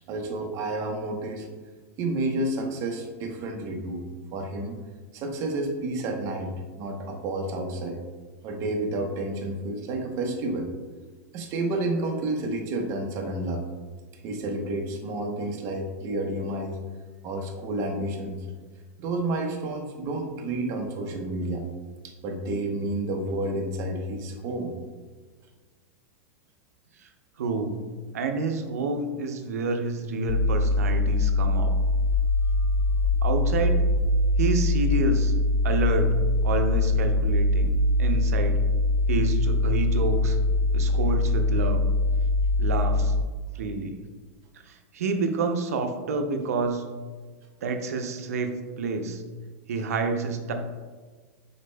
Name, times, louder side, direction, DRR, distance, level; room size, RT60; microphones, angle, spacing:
voice 1, 0.1-1.5 2.0-4.8 5.1-8.0 8.4-10.7 11.3-13.6 14.2-16.8 17.2-18.5 19.0-21.7 22.0-24.7 32.6-32.7, right 2 dB, 40° right, 3 dB, 0.7 m, -30 dB
voice 2, 27.4-27.7 28.1-31.7 33.2-33.8 34.4-35.3 35.6-36.1 36.4-38.6 39.1-40.4 40.7-41.8 42.6-43.1 43.5-44.0 44.7-46.8 47.6-49.2 49.7-50.5, right 3 dB, 90° right, 5 dB, 0.6 m, -28 dB
sound 1, 30.3-43.2, left 2 dB, 60° left, 0.4 m, -23 dB
5.1 x 4.2 x 2.2 m, 1.4 s
supercardioid pair, 140°, 8 cm